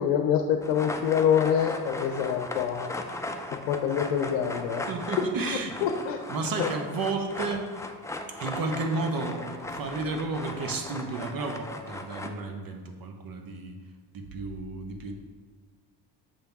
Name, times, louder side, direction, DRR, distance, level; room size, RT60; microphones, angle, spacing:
voice 1, 0.0-3.0 3.5-4.9 5.2-6.2 6.6-6.7, left 8 dB, 85° left, 5 dB, 0.7 m, -26 dB
sound 1, 0.6-12.3, left 2 dB, 5° left, 0.5 m, -37 dB
voice 2, 4.9-5.8 6.3-7.7 8.3-13.8 14.1-15.1, right 3 dB, 45° right, 5 dB, 1.1 m, -32 dB
7.2 x 3.4 x 5.8 m, 1.5 s
supercardioid pair, 75°, 48 cm